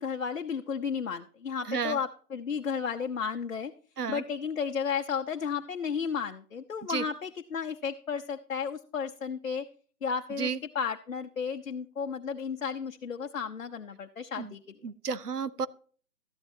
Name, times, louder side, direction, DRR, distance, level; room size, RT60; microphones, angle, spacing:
voice 1, 0.0-3.7 4.1-9.7 10.0-14.6, left 6 dB, 60° left, 5 dB, 0.9 m, -33 dB
voice 2, 14.8-15.7, right 6 dB, 75° right, 16 dB, 0.8 m, -32 dB
13.0 x 11.0 x 2.7 m, 0.42 s
figure-of-eight pair, 165°, 47 cm